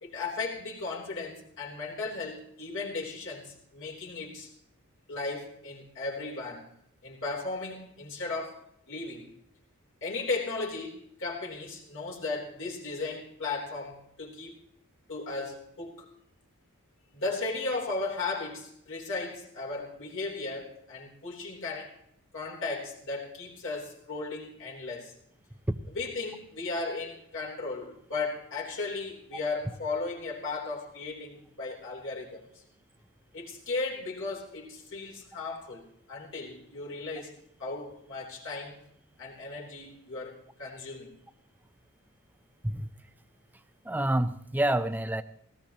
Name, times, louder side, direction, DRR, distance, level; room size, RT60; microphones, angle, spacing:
voice 1, 0.0-4.5 5.1-6.7 7.0-9.3 10.0-14.6 15.1-16.0 17.1-22.0 22.3-25.1 25.9-32.6 33.3-35.8 36.1-37.3 37.6-38.8 39.2-41.1, left 3 dB, 60° left, -2 dB, 3.5 m, -36 dB
voice 2, 43.9-45.2, right 1 dB, 10° right, 11 dB, 0.6 m, -27 dB
18.5 x 17.0 x 3.0 m, 0.70 s
head